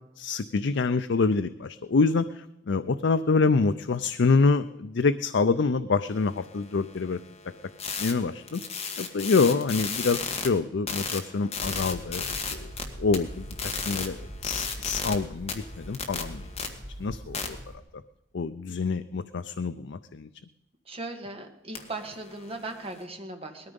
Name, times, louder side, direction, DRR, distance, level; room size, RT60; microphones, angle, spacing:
voice 1, 0.2-7.2 8.0-8.6 9.0-12.7 13.0-16.5 17.0-17.6 18.3-20.3, left 4 dB, 65° left, 11 dB, 0.5 m, -26 dB
sound 1, 6.1-10.5 10.9-12.8 13.1-15.1 15.5-16.7 17.3-17.5 21.8-23.0, left 5 dB, 35° left, 1.9 m, -35 dB
sound 2, 11.6-17.8, equal, 60° right, 4.1 m, -42 dB
voice 2, 20.9-23.7, right 2 dB, 30° right, 4 dB, 2.0 m, -38 dB
19.5 x 13.5 x 5.3 m, 0.91 s
head